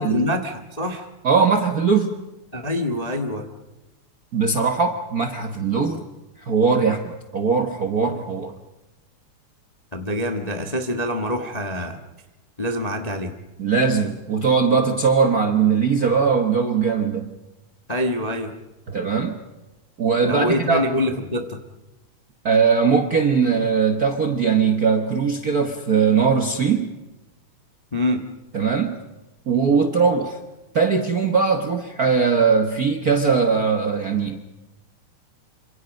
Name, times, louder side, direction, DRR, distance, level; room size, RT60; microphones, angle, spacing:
voice 1, 0.0-1.1 2.5-3.5 9.9-12.0 12.6-13.3 17.9-18.5 20.3-21.6 27.9-28.2, left 1 dB, 25° left, 4 dB, 0.8 m, -25 dB
voice 2, 1.2-2.1 4.3-6.1 6.4-8.5 13.6-17.3 18.9-19.4 20.0-20.9 22.4-26.9 28.5-29.0 29.5-30.4 30.7-34.4, right 5 dB, 50° right, 6 dB, 1.1 m, -20 dB
27.5 x 26.5 x 5.3 m, 1.1 s
omnidirectional pair, 3.4 m